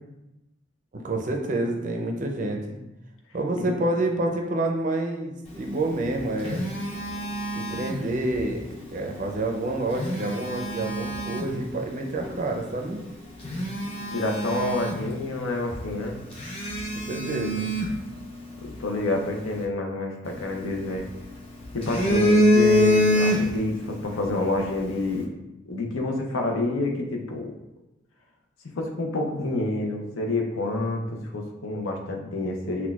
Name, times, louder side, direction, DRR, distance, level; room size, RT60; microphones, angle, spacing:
voice 1, 0.9-2.8 3.3-6.6 7.5-8.6 8.9-13.0 17.0-17.7, right 2 dB, 40° right, 2 dB, 0.4 m, -28 dB
Telephone, 5.9-8.5 9.7-11.6 12.2-12.4 12.9-13.0 13.4-15.5 15.7-15.8 16.3-18.7 20.3-21.2 21.6-23.8 24.1-24.3, equal, 30° left, 0.5 m, -25 dB
voice 2, 14.1-16.2 18.6-21.1 21.7-25.3 25.7-27.5 28.8-32.9, left 2 dB, 80° left, 2 dB, 0.6 m, -28 dB
5.8 x 2.2 x 2.3 m, 0.93 s
head